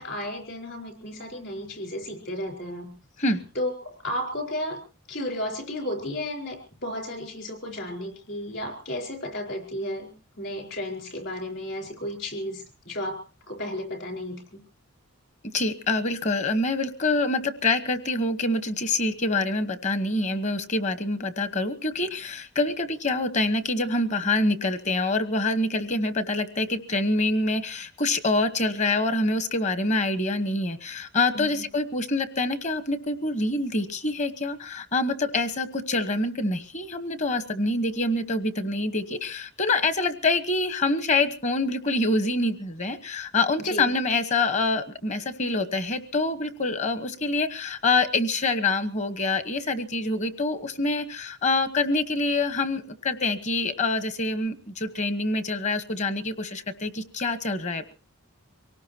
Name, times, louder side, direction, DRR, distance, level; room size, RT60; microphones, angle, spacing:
voice 1, 0.0-2.9 3.5-4.8 5.1-10.1 10.4-13.2 13.5-14.6 31.3-31.6 43.6-43.9, left 1 dB, 50° left, 3 dB, 4.7 m, -33 dB
voice 2, 15.5-57.9, left 2 dB, 30° left, 11 dB, 1.1 m, -26 dB
25.0 x 18.5 x 2.9 m, 0.35 s
head